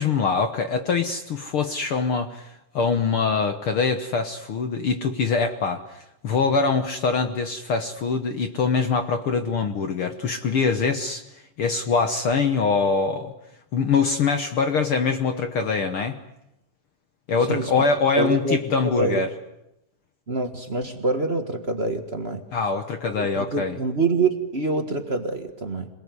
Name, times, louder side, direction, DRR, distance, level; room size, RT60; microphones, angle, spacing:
voice 1, 0.0-11.2 11.6-13.3 13.7-16.2 17.3-19.3 22.5-23.8, left 5 dB, 60° left, 8 dB, 1.4 m, -23 dB
voice 2, 17.5-17.8 18.2-18.6 18.8-19.2 20.3-22.5 23.0-25.9, right 3 dB, 40° right, 6 dB, 0.9 m, -26 dB
27.0 x 19.5 x 9.7 m, 0.85 s
omnidirectional pair, 3.9 m